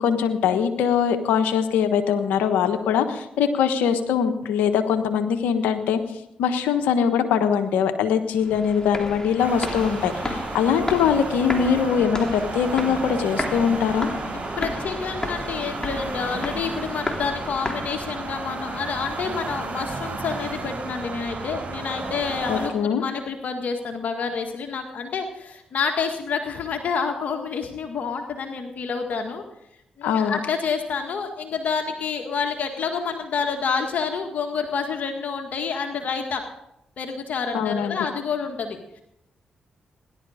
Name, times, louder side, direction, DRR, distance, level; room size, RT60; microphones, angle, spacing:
voice 1, 0.0-6.0 6.4-14.1 22.5-23.0 30.0-30.4 37.5-38.0, left 7 dB, 85° left, 7 dB, 1.3 m, -22 dB
sound 1, 8.4-18.4, left 2 dB, 25° left, 3.2 m, -33 dB
sound 2, 9.4-22.7, right 3 dB, 50° right, 6.4 m, -33 dB
voice 2, 14.6-29.4 30.0-36.4 37.0-39.0, left 5 dB, 70° left, 4 dB, 1.7 m, -28 dB
17.0 x 11.5 x 5.0 m, 0.81 s
supercardioid pair, 45°, 3 cm